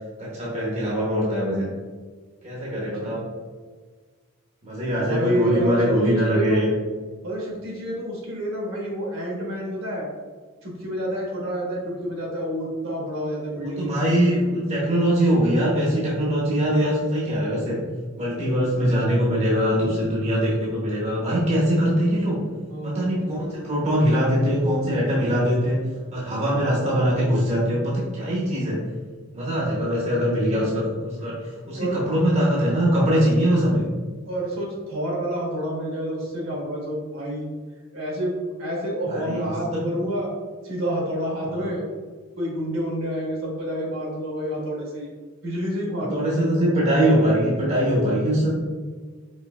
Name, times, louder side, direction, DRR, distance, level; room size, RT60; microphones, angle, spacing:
voice 1, 0.2-1.7 2.4-3.2 4.6-6.7 13.6-17.8 18.2-22.4 22.8-25.8 26.1-28.8 29.3-31.4 31.7-33.8 39.1-39.8 41.5-41.7 46.1-48.5, equal, 35° right, -6 dB, 1.0 m, -22 dB
voice 2, 5.0-6.6 7.2-10.1 10.6-14.2 22.7-23.2 31.7-32.0 34.3-37.5 37.9-40.3 40.6-41.8 42.4-45.1 45.4-46.3 46.6-46.7, right 1 dB, 65° right, -3 dB, 1.4 m, -28 dB
5.1 x 3.3 x 2.4 m, 1.5 s
head